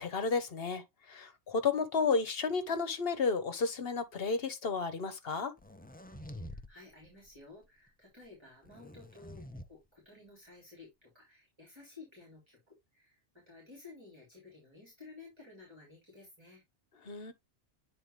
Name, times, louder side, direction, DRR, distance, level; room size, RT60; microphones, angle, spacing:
voice 1, 0.0-5.5 17.0-17.3, left 4 dB, 60° left, 1.2 m, -32 dB
sound 1, 5.6-6.7 7.0-7.4 8.6-9.7, left 1 dB, 10° left, 0.5 m, -47 dB
voice 2, 6.4-16.6, left 3 dB, 25° right, 3.8 m, -54 dB
8.9 x 3.9 x 3.3 m
omnidirectional pair, 1.1 m